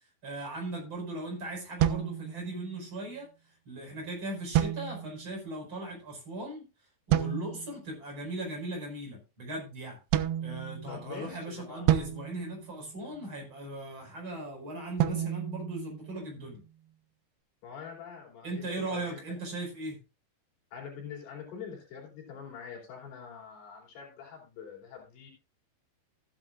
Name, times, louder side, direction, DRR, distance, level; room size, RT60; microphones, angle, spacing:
voice 1, 0.2-3.3 3.7-6.7 7.1-10.0 10.4-16.6 18.4-20.0, right 2 dB, 30° right, 0 dB, 5.4 m, -38 dB
sound 1, 1.8-2.9 4.5-5.4 7.1-7.8 10.1-11.2 11.9-13.3 15.0-16.5, right 12 dB, 85° right, 2.8 m, -30 dB
voice 2, 10.9-11.9 17.6-19.2 20.7-25.3, left 7 dB, 75° left, -2 dB, 5.1 m, -44 dB
14.5 x 10.5 x 2.5 m, 0.30 s
omnidirectional pair, 4.7 m